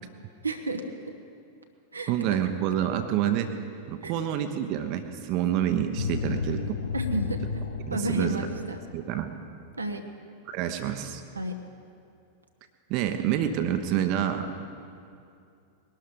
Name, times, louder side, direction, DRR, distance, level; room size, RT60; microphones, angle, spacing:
voice 1, 0.4-0.8 1.9-2.1 4.0-4.1 6.9-7.4 7.9-8.8 9.8-10.0 11.3-11.5, right 2 dB, 80° right, 4 dB, 1.0 m, -30 dB
voice 2, 2.1-3.5 3.9-6.7 7.9-8.3 8.9-9.3 10.5-11.2 12.9-14.5, right 10 dB, 45° right, 7 dB, 1.0 m, -27 dB
sound 1, 6.0-8.8, left 5 dB, 70° left, 0.7 m, -32 dB
21.0 x 12.0 x 5.2 m, 2.5 s
figure-of-eight pair, 90°, 0 cm